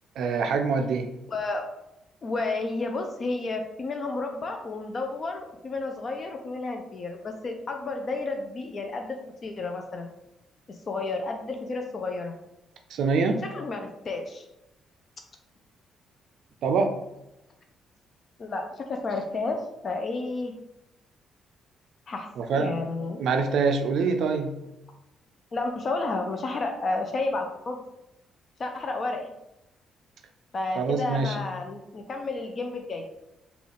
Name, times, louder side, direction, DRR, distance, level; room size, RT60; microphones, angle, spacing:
voice 1, 0.2-1.1 12.9-13.4 16.6-16.9 22.4-22.7 23.2-24.5 30.8-31.4, right 4 dB, 75° right, 5 dB, 0.3 m, -25 dB
voice 2, 1.3-1.6 2.2-10.1 10.7-12.3 13.4-14.5 18.4-20.5 22.1-23.2 25.5-27.8 28.6-29.3 30.5-33.0, left 3 dB, 45° left, 4 dB, 0.4 m, -31 dB
3.8 x 2.3 x 3.4 m, 0.89 s
cardioid pair, 90°, 0 cm